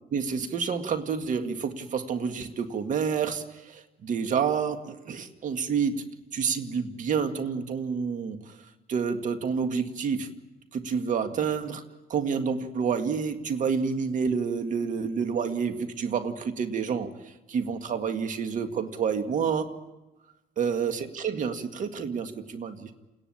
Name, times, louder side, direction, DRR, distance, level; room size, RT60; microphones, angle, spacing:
voice 1, 0.1-6.0 6.3-8.4 8.9-10.3 10.7-11.8 12.1-17.1 17.5-19.7 20.6-22.9, right 6 dB, 50° right, 7 dB, 1.9 m, -29 dB
30.0 x 11.0 x 8.7 m, 1.1 s
cardioid pair, 110°, 17 cm